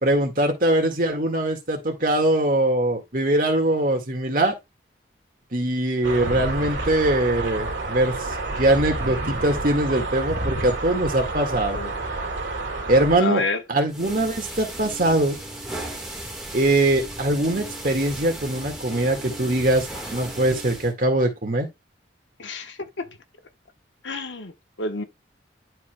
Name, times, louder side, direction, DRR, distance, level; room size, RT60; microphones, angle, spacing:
voice 1, 0.0-4.5 5.5-8.1 8.6-11.8 12.9-13.4 13.7-15.4 16.5-21.7, right 1 dB, 45° right, 1.9 m, -22 dB
sound 1, 6.0-13.2, right 2 dB, 80° right, 2.0 m, -29 dB
voice 2, 13.2-13.6 22.4-23.2 24.0-25.0, left 3 dB, 85° left, 1.1 m, -29 dB
sound 2, 13.9-20.9, right 1 dB, ahead, 1.6 m, -36 dB
11.0 x 4.8 x 2.3 m
head